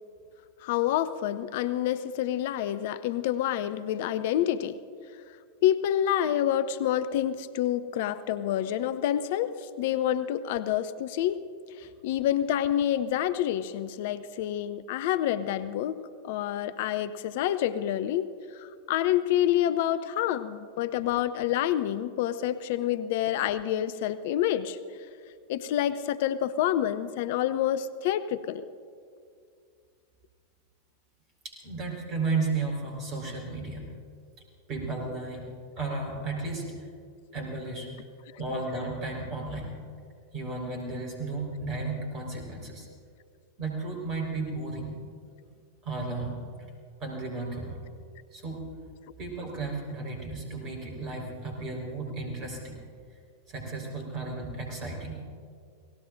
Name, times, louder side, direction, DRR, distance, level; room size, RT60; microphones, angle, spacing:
voice 1, 0.6-4.8 5.6-11.4 11.8-16.0 16.2-24.8 25.5-28.6, left 11 dB, 50° left, 14 dB, 0.5 m, -28 dB
voice 2, 31.4-33.9 34.7-35.5 35.8-36.9 37.3-37.9 38.4-39.8 40.3-42.9 43.6-45.0 45.8-46.4 47.0-47.8 48.3-48.7 49.2-52.8 53.5-55.2, right 3 dB, 35° right, 0 dB, 4.6 m, -34 dB
29.0 x 18.0 x 2.6 m, 2.3 s
figure-of-eight pair, 90°, 0 cm